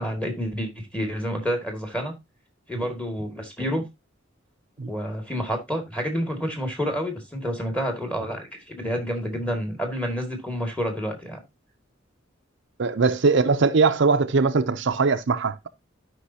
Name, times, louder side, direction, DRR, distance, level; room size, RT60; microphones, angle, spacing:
voice 1, 0.0-2.1 2.7-3.8 4.9-11.4, equal, 5° left, 2.0 m, -29 dB
voice 2, 12.8-15.7, right 4 dB, 65° right, 0.6 m, -21 dB
13.5 x 5.3 x 2.7 m
head